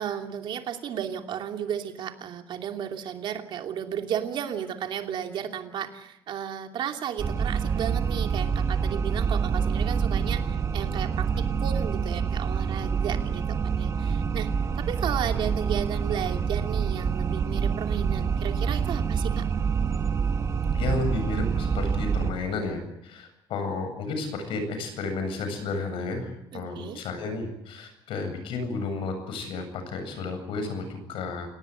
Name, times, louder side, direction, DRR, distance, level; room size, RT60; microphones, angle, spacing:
voice 1, 0.0-14.5 14.7-19.5 26.5-27.0, right 9 dB, 60° right, 4 dB, 2.8 m, -34 dB
sound 1, 7.2-22.3, right 6 dB, 35° right, 1.6 m, -26 dB
voice 2, 20.7-31.5, left 3 dB, 70° left, 8 dB, 7.9 m, -32 dB
29.0 x 18.5 x 8.1 m, 0.80 s
cardioid pair, 150°, 9 cm